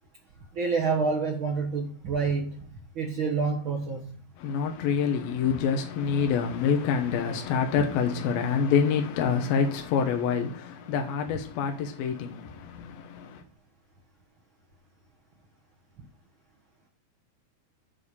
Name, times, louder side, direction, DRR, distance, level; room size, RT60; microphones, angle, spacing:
voice 1, 0.5-2.6 2.9-4.2, right 4 dB, 65° right, 1.2 m, -28 dB
voice 2, 4.4-13.4, left 6 dB, 75° left, 2.9 m, -27 dB
8.7 x 5.8 x 7.0 m
omnidirectional pair, 4.4 m